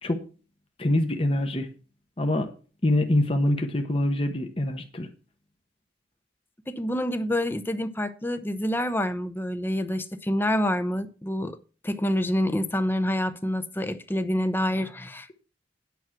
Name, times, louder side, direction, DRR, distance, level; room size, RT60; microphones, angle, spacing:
voice 1, 0.8-1.7 2.2-2.5 2.8-5.1, left 1 dB, 30° left, 1.0 m, -24 dB
voice 2, 6.7-11.6 11.8-15.3, left 1 dB, 10° left, 0.7 m, -27 dB
9.3 x 6.0 x 6.0 m
head